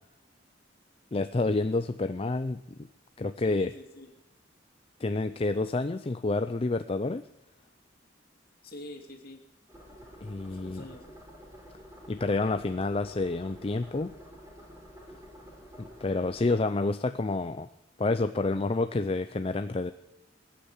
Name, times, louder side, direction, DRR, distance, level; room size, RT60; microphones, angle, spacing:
voice 1, 1.1-2.6 3.2-3.7 5.0-7.2 10.2-10.8 12.1-14.1 15.8-17.7 18.0-19.9, left 3 dB, 30° left, 10 dB, 0.5 m, -29 dB
voice 2, 3.4-4.1 8.6-9.4 10.5-11.2, left 1 dB, 50° left, 3 dB, 2.7 m, -45 dB
sound 1, 9.7-16.5, equal, 15° right, 4.4 m, -50 dB
20.0 x 8.8 x 8.2 m, 0.96 s
head